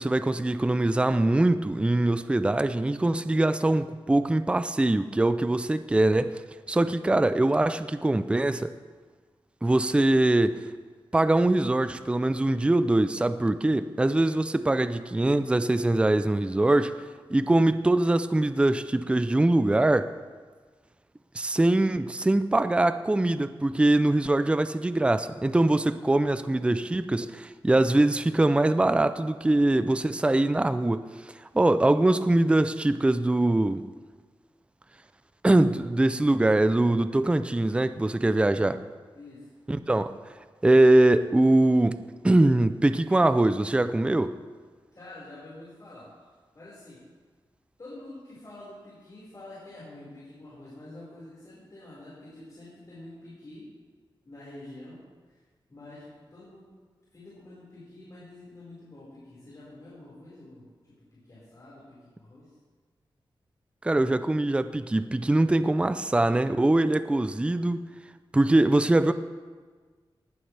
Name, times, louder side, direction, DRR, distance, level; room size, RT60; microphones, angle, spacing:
voice 1, 0.0-6.4 6.7-8.7 9.6-10.6 11.1-17.0 17.3-20.1 21.4-31.0 31.5-33.8 35.4-38.8 39.7-40.1 40.6-42.0 42.2-44.3 63.8-67.9 68.3-69.1, right 2 dB, 10° right, 12 dB, 0.4 m, -23 dB
voice 2, 6.8-7.3 14.4-14.6 39.1-39.5 44.9-47.0 47.8-53.7 54.2-55.0 55.2-55.4 55.7-56.7 57.1-60.7 61.1-62.6, left 2 dB, 40° left, -10 dB, 5.0 m, -47 dB
19.0 x 11.5 x 3.4 m, 1.5 s
wide cardioid pair, 110°, 9 cm